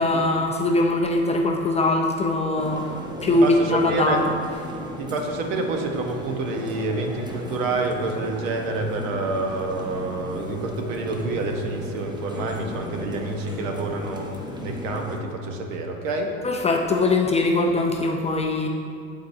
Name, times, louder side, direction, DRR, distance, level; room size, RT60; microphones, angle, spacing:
voice 1, 0.0-2.9 3.2-4.2 16.4-18.7, left 2 dB, 20° left, 1 dB, 0.3 m, -21 dB
sound 1, 2.6-15.2, equal, 10° right, 1.0 m, -36 dB
voice 2, 3.4-4.2 5.0-14.3 14.6-16.3, right 2 dB, 70° right, 3 dB, 1.0 m, -28 dB
11.5 x 4.0 x 2.6 m, 2.3 s
hypercardioid pair, 90°, 40 cm